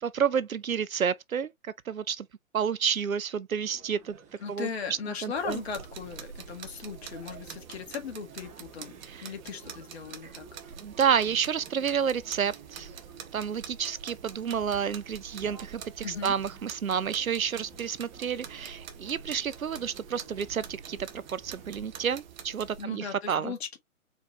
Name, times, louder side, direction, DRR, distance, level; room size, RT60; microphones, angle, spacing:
voice 1, 0.0-2.3 2.5-4.2 4.5-4.7 5.2-5.6 9.1-9.3 10.8-13.0 13.3-23.5, right 7 dB, 80° right, 0.7 m, -30 dB
sound 1, 3.6-22.1, right 5 dB, 15° right, 1.6 m, -52 dB
voice 2, 4.4-8.9 9.2-10.5 16.0-16.3 22.8-23.8, left 6 dB, 50° left, 1.8 m, -38 dB
sound 2, 5.4-22.8, right 7 dB, 35° right, 1.0 m, -46 dB
4.5 x 4.2 x 2.7 m
figure-of-eight pair, 130°, 41 cm